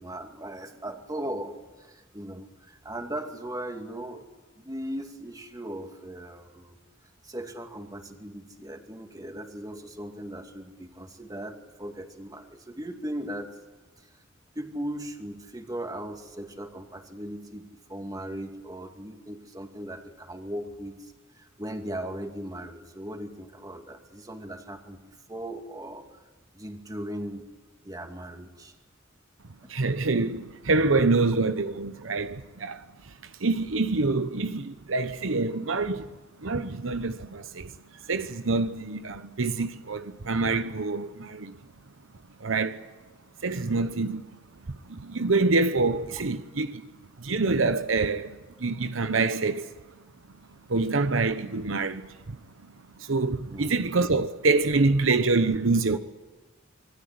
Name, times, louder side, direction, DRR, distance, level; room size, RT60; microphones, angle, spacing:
voice 1, 0.0-4.3 4.6-6.8 7.2-13.5 14.5-21.0 21.4-26.2 26.5-27.4 27.8-28.7 29.6-29.7 53.5-53.8, right 1 dB, 20° right, 2.5 m, -38 dB
voice 2, 29.7-32.8 33.4-36.1 36.4-37.7 38.1-41.5 42.4-42.9 43.4-44.2 44.9-46.9 47.2-49.7 50.7-52.1 53.0-56.0, right 3 dB, 75° right, 1.0 m, -26 dB
26.5 x 21.5 x 9.6 m
head